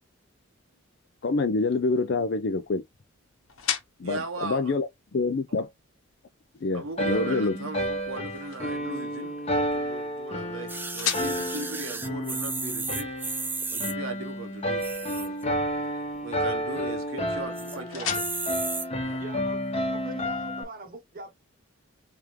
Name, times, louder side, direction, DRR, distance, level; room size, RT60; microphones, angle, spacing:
sound 1, 0.9-19.8, left 8 dB, 80° left, 1.0 m, -41 dB
voice 1, 1.2-2.8 4.0-4.9 5.1-5.7 6.6-7.6, left 3 dB, 55° left, 0.5 m, -26 dB
voice 2, 4.0-4.8 6.7-13.3 13.7-15.3 16.2-18.1 19.0-19.2, right 3 dB, 80° right, 1.3 m, -38 dB
sound 2, 7.0-20.6, equal, 30° left, 0.9 m, -31 dB
sound 3, 10.7-13.9 14.7-15.4 15.9-16.2 16.6-17.0 17.6-17.8 18.1-18.9 19.6-19.7, right 4 dB, 10° right, 0.4 m, -34 dB
voice 3, 17.7-18.2 19.2-19.6 19.9-21.3, right 2 dB, 45° right, 1.0 m, -42 dB
3.5 x 3.4 x 3.0 m
head